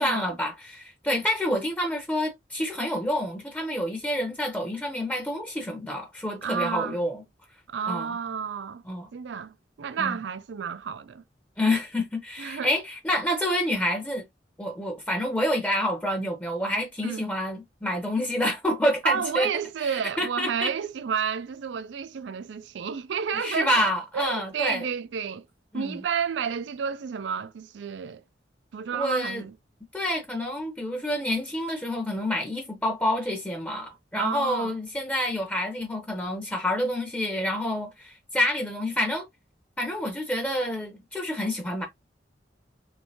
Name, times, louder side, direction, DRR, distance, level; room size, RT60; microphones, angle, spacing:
voice 1, 0.0-7.2 7.9-8.1 8.9-9.1 10.0-10.2 11.6-14.2 14.6-19.5 19.8-20.7 23.4-24.8 25.7-26.0 28.9-29.4 29.9-39.3 39.8-41.9, left 1 dB, 10° left, 0.8 m, -28 dB
voice 2, 6.4-7.0 7.7-8.8 9.1-11.2 12.4-12.7 17.0-17.3 19.0-25.5 25.7-28.2 28.7-29.5 34.1-34.7, right 7 dB, 70° right, 0.4 m, -31 dB
3.2 x 3.1 x 2.8 m
head